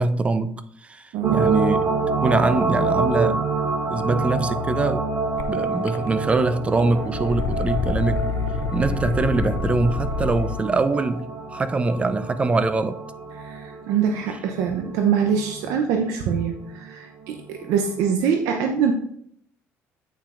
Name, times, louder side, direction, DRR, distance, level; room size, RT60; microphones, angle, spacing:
voice 1, 0.0-1.8 2.2-3.5 3.9-5.1 5.5-8.2 8.7-13.0, right 3 dB, 25° right, 0.4 m, -23 dB
voice 2, 1.1-1.6 13.4-18.9, right 7 dB, 85° right, 0.6 m, -24 dB
sound 1, 1.2-16.9 17.3-17.4, right 3 dB, 50° right, 1.0 m, -28 dB
sound 2, 5.4-5.5 5.9-6.4 6.7-10.7, left 5 dB, 60° left, 0.5 m, -27 dB
8.6 x 5.5 x 2.5 m
cardioid pair, 110°, 5 cm